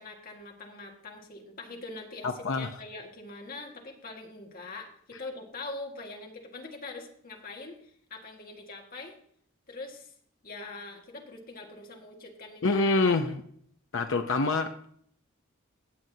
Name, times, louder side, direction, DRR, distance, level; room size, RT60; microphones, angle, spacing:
voice 1, 0.0-9.2 9.7-10.1 10.4-13.0, left 2 dB, 45° left, 1 dB, 1.8 m, -43 dB
voice 2, 2.2-2.7 12.6-13.4 13.9-14.8, left 3 dB, 65° left, 6 dB, 0.7 m, -26 dB
16.5 x 7.7 x 2.8 m, 0.63 s
head